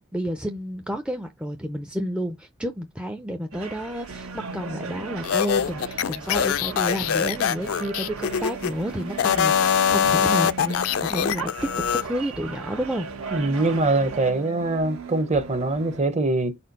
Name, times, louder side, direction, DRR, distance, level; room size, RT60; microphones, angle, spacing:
voice 1, 0.0-11.5 12.0-13.1, equal, 5° right, 0.4 m, -30 dB
sound 1, 3.5-14.3, right 4 dB, 90° right, 1.2 m, -39 dB
sound 2, 4.1-16.1, right 4 dB, 70° right, 1.0 m, -40 dB
sound 3, 5.2-8.7 9.1-12.0, left 8 dB, 75° left, 0.4 m, -23 dB
voice 2, 13.3-16.6, right 2 dB, 30° right, 0.7 m, -23 dB
4.4 x 4.3 x 5.2 m
head